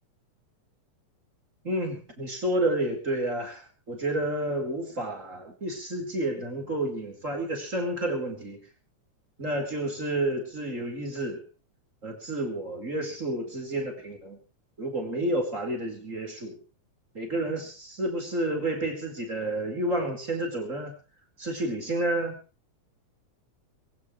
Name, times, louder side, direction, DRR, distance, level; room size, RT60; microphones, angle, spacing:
voice 1, 1.6-8.6 9.4-11.4 12.0-14.4 14.8-16.6 17.1-21.0 21.4-22.4, right 1 dB, 25° right, 3 dB, 5.0 m, -30 dB
23.5 x 16.0 x 3.2 m, 0.35 s
omnidirectional pair, 3.4 m